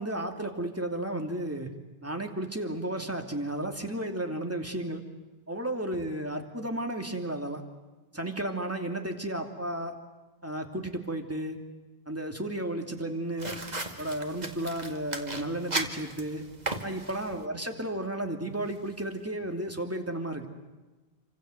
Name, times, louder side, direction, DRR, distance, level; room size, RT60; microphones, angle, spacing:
voice 1, 0.0-1.7 2.0-5.0 5.5-7.6 8.1-10.0 10.4-11.6 12.1-13.6 14.0-16.4 16.8-20.5, right 1 dB, 15° right, 3 dB, 2.8 m, -33 dB
sound 1, 13.4-17.5, right 2 dB, 40° right, 2.3 m, -36 dB
28.5 x 26.0 x 8.0 m, 1.2 s
omnidirectional pair, 1.1 m